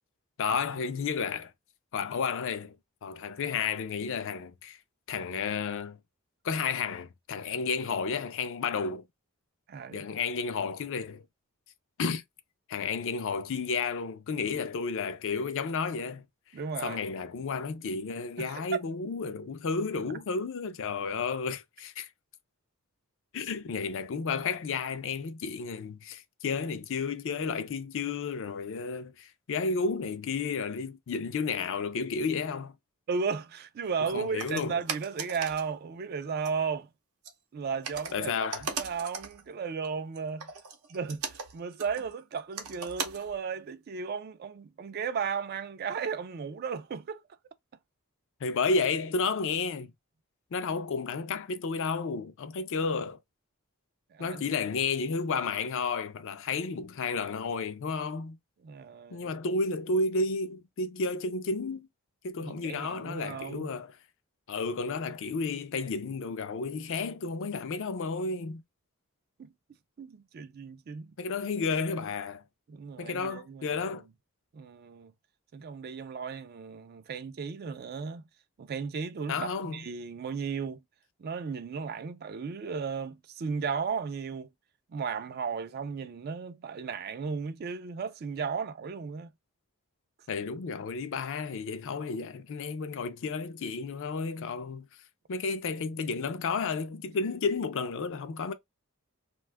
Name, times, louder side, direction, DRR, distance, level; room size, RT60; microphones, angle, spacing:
voice 1, 0.4-1.5 1.9-2.7 3.0-4.8 5.1-6.0 6.4-9.0 9.9-11.2 12.0-12.2 12.7-16.2 16.8-22.1 23.3-32.7 34.1-34.8 38.1-38.7 48.4-49.9 50.5-53.2 54.2-58.4 59.1-61.9 62.2-64.0 64.5-68.6 71.2-72.4 73.0-74.0 79.3-79.8 90.3-94.9 95.3-98.5, left 4 dB, 60° left, 0.4 m, -32 dB
voice 2, 9.7-10.1 16.5-17.0 18.4-18.8 33.1-36.9 37.5-40.5 40.9-47.2 54.1-54.4 58.6-59.3 62.4-63.7 69.4-69.5 70.0-71.2 72.7-73.8 74.5-75.1 75.5-78.2 78.6-80.8 81.2-84.5 84.9-89.3, right 5 dB, 45° right, 0.3 m, -35 dB
sound 1, 34.4-35.7 36.4-36.5 37.2-37.3 37.8-39.5 39.8-43.4, right 5 dB, 80° right, 0.7 m, -38 dB
2.5 x 2.3 x 3.2 m
head